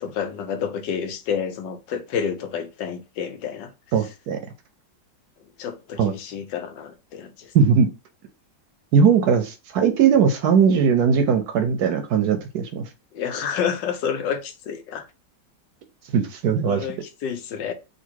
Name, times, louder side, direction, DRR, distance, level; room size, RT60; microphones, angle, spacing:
voice 1, 0.0-3.7 5.6-7.5 13.1-15.1 16.6-17.7, left 7 dB, 80° left, 1.3 m, -29 dB
voice 2, 3.9-4.4 6.0-6.1 7.5-7.9 8.9-12.9 16.1-16.9, right 6 dB, 70° right, 1.0 m, -19 dB
3.9 x 2.6 x 4.5 m
omnidirectional pair, 2.0 m